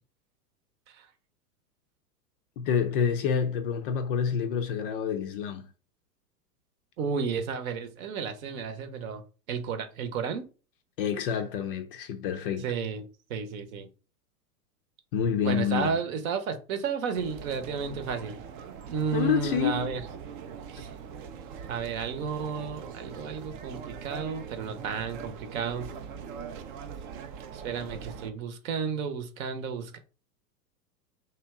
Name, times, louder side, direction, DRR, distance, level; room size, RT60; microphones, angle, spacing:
voice 1, 2.6-5.7 11.0-12.7 15.1-16.0 19.1-19.9, left 7 dB, 35° left, 0.4 m, -28 dB
voice 2, 7.0-9.2 9.5-10.5 12.6-13.9 15.4-18.4 18.9-20.0 20.7-20.9 21.7-25.9 27.5-30.0, right 6 dB, 55° right, 0.9 m, -32 dB
sound 1, 17.1-28.3, right 7 dB, 35° right, 0.4 m, -42 dB
3.3 x 2.8 x 3.5 m
hypercardioid pair, 100°, 49 cm